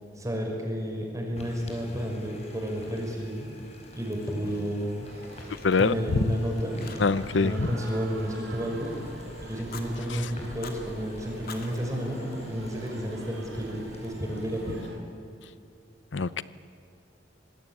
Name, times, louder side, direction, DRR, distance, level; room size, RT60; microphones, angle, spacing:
voice 1, 0.2-3.5 3.9-5.1 5.8-9.0 9.4-14.8, equal, 20° right, 1 dB, 5.6 m, -31 dB
sound 1, 1.3-14.9, left 1 dB, 40° left, 5.0 m, -49 dB
Fire, 3.8-4.9 5.2-6.4 6.8-7.4 7.6-9.0 9.5-9.9 10.4-10.8 11.3-12.9, left 5 dB, 55° left, 2.6 m, -48 dB
sound 2, 5.0-15.0, right 2 dB, 75° right, 3.8 m, -46 dB
voice 2, 5.6-5.9 7.0-7.7 16.1-16.4, left 4 dB, 85° left, 16 dB, 0.7 m, -24 dB
25.0 x 19.5 x 9.1 m, 2.5 s
head